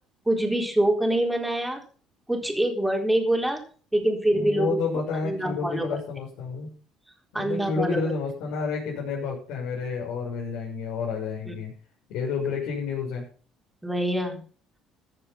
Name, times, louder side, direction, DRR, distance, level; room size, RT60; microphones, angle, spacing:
voice 1, 0.3-1.8 2.3-3.6 3.9-6.0 7.3-8.1 11.5-11.6 13.8-14.4, right 1 dB, 5° right, 2 dB, 4.1 m, -25 dB
voice 2, 4.3-6.7 7.3-11.7 12.1-13.2, left 5 dB, 80° left, -5 dB, 6.5 m, -30 dB
15.0 x 9.9 x 5.8 m, 0.41 s
cardioid pair, 135°, 0 cm